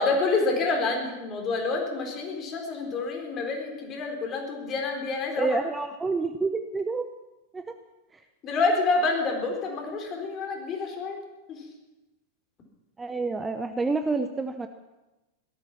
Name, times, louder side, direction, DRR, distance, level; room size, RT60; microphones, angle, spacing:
voice 1, 0.0-5.6 8.4-11.2 11.5-11.6, left 3 dB, 30° left, 1 dB, 4.0 m, -28 dB
voice 2, 5.4-7.1 7.5-7.7 13.0-14.7, right 3 dB, 10° right, 8 dB, 0.8 m, -28 dB
17.5 x 13.0 x 6.0 m, 1.0 s
figure-of-eight pair, 90°, 0 cm